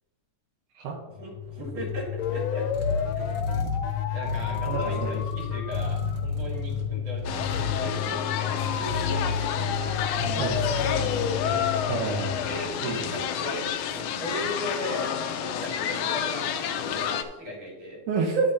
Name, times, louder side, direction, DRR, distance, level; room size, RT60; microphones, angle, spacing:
voice 1, 1.1-2.7 3.1-3.4 4.1-8.2 8.6-9.4 10.2-11.8 12.5-15.1 15.4-18.0, equal, 60° right, -3 dB, 3.9 m, -37 dB
sound 1, 1.2-13.0, left 8 dB, 70° left, 1.9 m, -31 dB
sound 2, 1.4-12.0, left 3 dB, 40° right, 0.9 m, -34 dB
voice 2, 4.7-5.1 10.4-10.6 11.9-12.4 12.8-13.1 18.1-18.5, right 4 dB, 85° right, -3 dB, 2.6 m, -28 dB
sound 3, 7.3-17.2, left 8 dB, 90° left, 2.1 m, -30 dB
10.5 x 8.7 x 2.8 m, 1.1 s
omnidirectional pair, 3.4 m